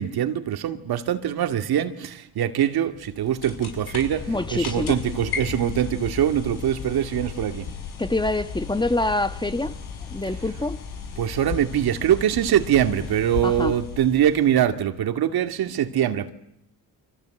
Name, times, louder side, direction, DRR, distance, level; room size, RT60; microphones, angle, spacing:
voice 1, 0.0-7.7 11.2-16.3, right 10 dB, 75° right, 2.3 m, -23 dB
sound 1, 3.0-14.8, left 6 dB, 80° left, 7.2 m, -35 dB
voice 2, 4.3-5.0 8.0-9.7 10.1-10.8 13.4-13.7, left 2 dB, 10° left, 1.5 m, -25 dB
29.5 x 25.5 x 7.9 m
cardioid pair, 85°, 38 cm